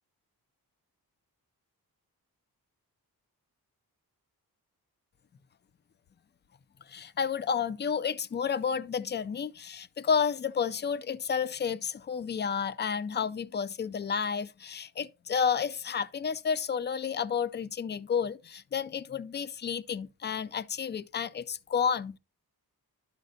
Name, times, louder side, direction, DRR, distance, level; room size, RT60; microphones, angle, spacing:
voice 1, 6.9-22.2, left 6 dB, 30° left, 0.4 m, -31 dB
11.5 x 5.2 x 2.7 m
cardioid pair, 85°, 38 cm